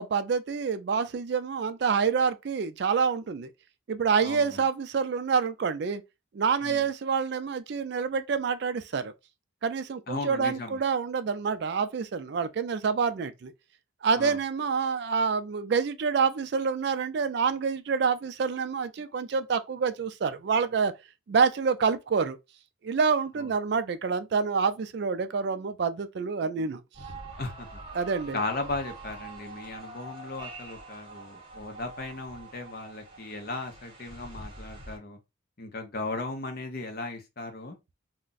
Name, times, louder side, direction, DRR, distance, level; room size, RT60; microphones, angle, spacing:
voice 1, 0.0-3.5 3.9-6.0 6.3-9.1 9.6-13.5 14.0-20.9 21.3-22.4 22.8-26.8 27.9-28.4, right 5 dB, 55° right, 0.3 m, -27 dB
voice 2, 10.1-10.8 14.2-14.4 23.4-23.5 27.4-27.8 28.3-35.2 35.6-37.8, left 2 dB, 45° left, 0.7 m, -36 dB
sound 1, 26.9-35.0, right 3 dB, 25° right, 0.8 m, -45 dB
2.4 x 2.2 x 3.8 m
head